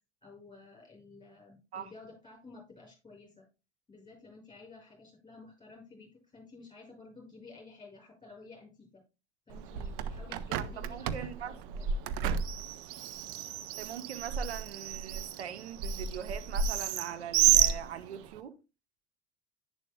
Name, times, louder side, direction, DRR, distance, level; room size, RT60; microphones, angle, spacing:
voice 1, 0.2-3.5 3.9-9.0 9.5-11.9, left 3 dB, 15° left, 5.8 m, -53 dB
Bird, 9.5-18.4, right 9 dB, 50° right, 0.8 m, -31 dB
voice 2, 10.6-11.5 13.8-18.6, right 8 dB, 70° right, 1.0 m, -41 dB
11.0 x 9.9 x 2.2 m
figure-of-eight pair, 65°, 33 cm